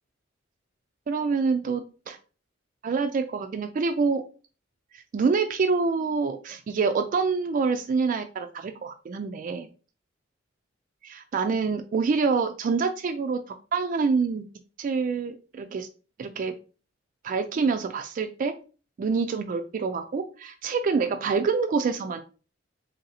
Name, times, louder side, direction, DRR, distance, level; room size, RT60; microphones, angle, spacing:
voice 1, 1.1-2.2 2.8-4.2 5.1-9.7 11.0-14.4 14.8-15.9 16.2-16.6 17.2-18.6 19.0-22.2, right 4 dB, 45° right, 6 dB, 0.3 m, -26 dB
3.2 x 2.7 x 4.0 m, 0.36 s
head